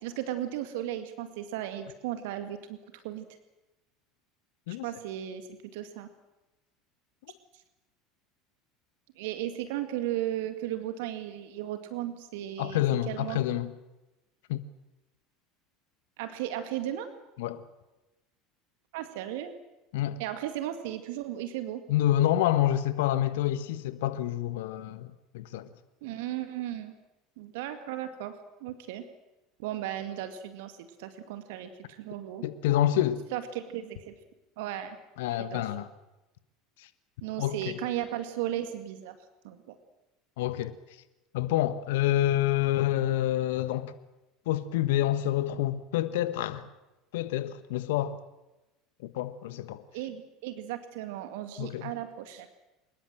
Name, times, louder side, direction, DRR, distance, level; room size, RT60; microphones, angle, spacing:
voice 1, 0.0-3.3 4.7-6.1 9.2-13.4 16.2-17.1 18.9-19.5 20.2-21.8 26.0-26.9 27.4-28.3 28.6-29.1 29.6-32.5 33.3-34.1 34.6-35.0 35.4-35.7 37.2-39.2 39.4-39.8 49.9-52.5, right 12 dB, 65° right, 2.1 m, -35 dB
voice 2, 12.6-13.7 14.5-14.6 17.4-17.6 19.9-20.2 21.9-25.7 32.4-33.2 35.2-35.9 36.8-36.9 37.4-37.6 40.4-40.7 41.3-43.9 44.5-46.7 47.1-48.2 49.0-49.8 51.6-51.9, left 13 dB, 70° left, 1.3 m, -28 dB
24.5 x 21.0 x 7.7 m
figure-of-eight pair, 75°, 0 cm